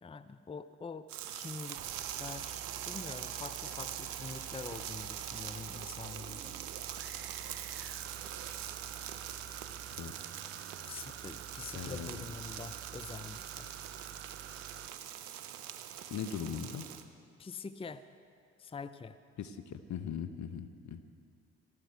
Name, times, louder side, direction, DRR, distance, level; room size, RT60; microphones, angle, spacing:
voice 1, 0.0-6.6 10.8-13.7 17.4-18.0 18.6-19.2, left 5 dB, 15° left, 12 dB, 0.6 m, -45 dB
sound 1, 1.1-17.0, right 10 dB, 80° right, 0.8 m, -43 dB
sound 2, 1.7-14.9, right 9 dB, 40° right, 0.6 m, -49 dB
voice 2, 11.7-12.2 16.1-16.9 19.4-21.0, left 8 dB, 60° left, 11 dB, 1.0 m, -39 dB
18.0 x 14.0 x 4.6 m, 2.5 s
hypercardioid pair, 45°, 33 cm